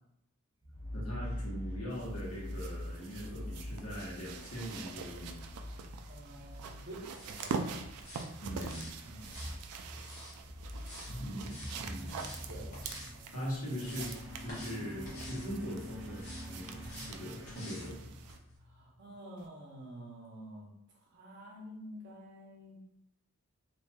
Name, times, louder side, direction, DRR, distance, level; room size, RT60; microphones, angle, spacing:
smooth torn variative - smooth torn variative, 0.6-18.8, left 1 dB, 10° right, 0.6 m, -45 dB
voice 1, 0.9-5.4 8.4-8.9 11.1-12.2 13.3-18.0, equal, 85° left, -5 dB, 1.1 m, -41 dB
sound 1, 1.9-18.4 19.4-19.5, right 5 dB, 90° right, 0.3 m, -45 dB
voice 2, 6.1-7.6 9.0-9.2 10.6-10.8 12.5-12.8 18.6-22.8, right 1 dB, 50° right, -2 dB, 0.7 m, -49 dB
sound 2, 7.1-7.5 8.0-8.3 8.6-8.9 9.2-10.4 10.8-11.1 11.4-11.8 12.1-12.4 12.7-13.1 13.5-14.2 14.5-14.8 15.0-15.5 16.1-16.5 16.8-17.1 17.5-17.9 18.3-18.4, left 1 dB, 40° left, 0.8 m, -49 dB
2.8 x 2.7 x 2.2 m, 0.79 s
head